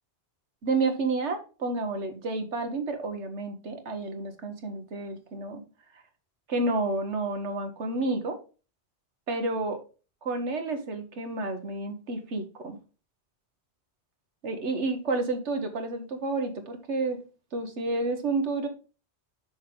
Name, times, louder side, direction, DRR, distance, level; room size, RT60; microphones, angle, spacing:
voice 1, 0.6-5.6 6.5-8.4 9.3-9.8 10.2-12.8 14.4-17.2 17.5-18.7, right 3 dB, 85° right, 6 dB, 1.6 m, -30 dB
6.4 x 6.4 x 3.8 m, 0.34 s
omnidirectional pair, 1.1 m